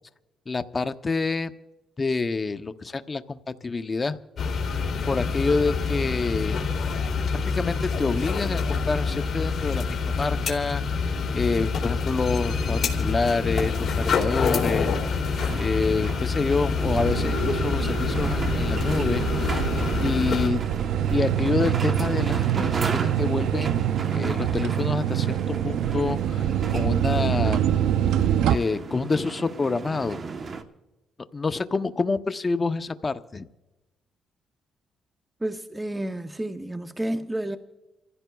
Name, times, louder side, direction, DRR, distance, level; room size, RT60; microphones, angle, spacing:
voice 1, 0.5-1.5 2.0-4.2 5.1-6.7 7.4-14.9 15.5-19.7 20.0-20.6 21.1-23.8 24.1-27.6 28.4-30.2 31.3-33.4, left 4 dB, 30° left, 0.6 m, -27 dB
sound 1, 4.4-20.5, left 5 dB, 50° left, 2.7 m, -26 dB
sound 2, 12.5-30.6, right 4 dB, 45° right, 1.0 m, -36 dB
sound 3, 16.9-28.6, right 10 dB, 85° right, 0.4 m, -25 dB
voice 2, 35.4-37.6, right 1 dB, 10° right, 0.6 m, -30 dB
29.5 x 15.0 x 2.3 m
cardioid pair, 90°, 0 cm